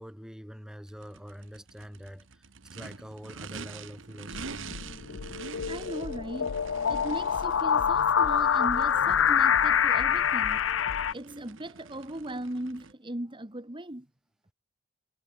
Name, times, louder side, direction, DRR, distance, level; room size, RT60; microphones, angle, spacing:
voice 1, 0.0-2.4 2.7-4.7, equal, 5° right, 6.8 m, -45 dB
Race car auto racing / Idling / Accelerating revving vroom, 0.9-12.9, right 5 dB, 85° right, 1.3 m, -46 dB
sound 1, 4.3-11.1, left 8 dB, 90° left, 0.5 m, -26 dB
voice 2, 5.7-6.5 6.9-10.6 11.1-14.1, right 1 dB, 25° right, 1.8 m, -38 dB
head